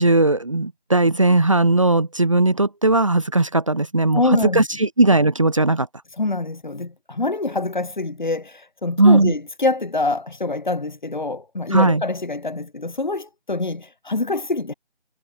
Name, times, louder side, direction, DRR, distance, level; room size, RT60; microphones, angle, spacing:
voice 1, 0.0-4.2 4.5-5.9 9.0-9.3 11.7-12.0, right 2 dB, 30° right, 1.8 m, -17 dB
voice 2, 4.1-4.6 6.2-14.7, left 2 dB, 45° left, 5.0 m, -25 dB
figure-of-eight pair, 170°, 34 cm